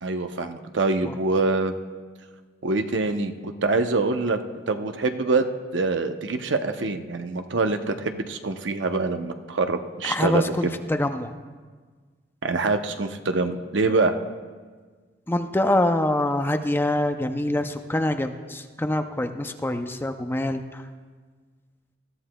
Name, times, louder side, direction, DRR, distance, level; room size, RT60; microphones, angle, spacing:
voice 1, 0.0-1.7 2.6-4.4 4.7-5.5 5.7-10.5 12.4-14.1, right 3 dB, 85° right, 7 dB, 0.7 m, -25 dB
voice 2, 10.0-11.3 15.3-20.8, left 1 dB, 10° left, 7 dB, 0.4 m, -25 dB
20.5 x 13.5 x 2.2 m, 1.5 s
head